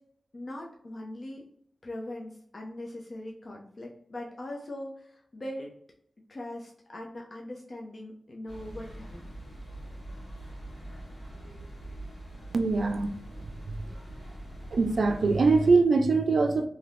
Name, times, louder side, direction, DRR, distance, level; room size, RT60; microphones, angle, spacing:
voice 1, 0.3-1.4 1.8-5.7 6.3-9.3, left 1 dB, 50° left, 0.5 m, -40 dB
sound 1, 8.5-15.8, right 1 dB, 80° left, 1.4 m, -43 dB
voice 2, 12.5-13.1 14.7-16.7, right 3 dB, 80° right, 0.3 m, -23 dB
2.7 x 2.5 x 3.3 m
wide cardioid pair, 90°, 0 cm